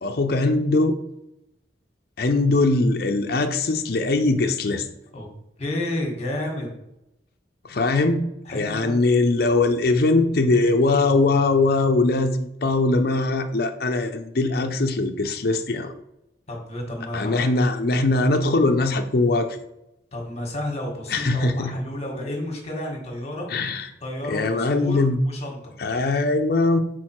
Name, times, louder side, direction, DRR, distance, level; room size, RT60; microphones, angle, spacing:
voice 1, 0.0-1.0 2.2-4.9 7.6-8.2 8.5-15.9 17.1-19.6 21.1-21.7 23.5-23.9 24.3-25.2 25.8-26.8, left 2 dB, 55° left, 5 dB, 0.6 m, -21 dB
voice 2, 5.6-6.7 8.4-9.0 16.5-17.5 20.1-23.5 24.0-25.7, left 1 dB, 35° left, 0 dB, 1.6 m, -31 dB
6.1 x 4.5 x 4.5 m, 0.87 s
head